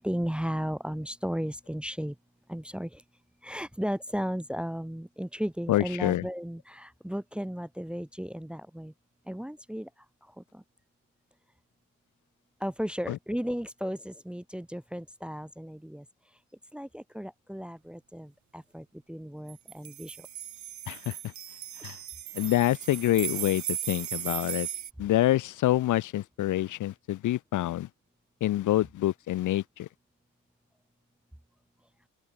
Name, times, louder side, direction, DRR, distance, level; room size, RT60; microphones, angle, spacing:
voice 1, 0.0-2.1 2.5-3.0 3.4-8.9 9.3-9.9 10.4-10.6 12.6-16.0 16.7-20.3, equal, 5° right, 0.9 m, -35 dB
voice 2, 5.7-6.2 13.1-13.2 20.9-21.3 21.8-22.0 22.3-24.7 25.0-27.9 28.4-29.9, left 14 dB, 80° left, 1.7 m, -27 dB
sound 1, 19.5-24.9, right 11 dB, 70° right, 4.6 m, -37 dB
open air
cardioid pair, 90°, 30 cm